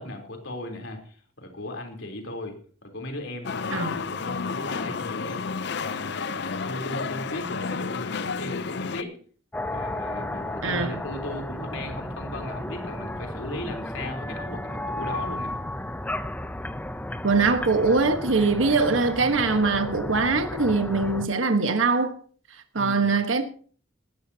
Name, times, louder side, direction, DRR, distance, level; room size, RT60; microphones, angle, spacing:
voice 1, 0.0-5.4 5.8-9.2 9.7-15.6 22.8-23.1, left 1 dB, 75° left, 3.6 m, -36 dB
sound 1, 3.4-9.0, left 5 dB, 60° left, 0.6 m, -31 dB
sound 2, 9.5-21.3, left 1 dB, 10° left, 0.6 m, -33 dB
voice 2, 10.6-10.9 17.2-22.2 22.7-23.4, right 3 dB, 85° right, 1.3 m, -22 dB
18.5 x 12.5 x 2.8 m
head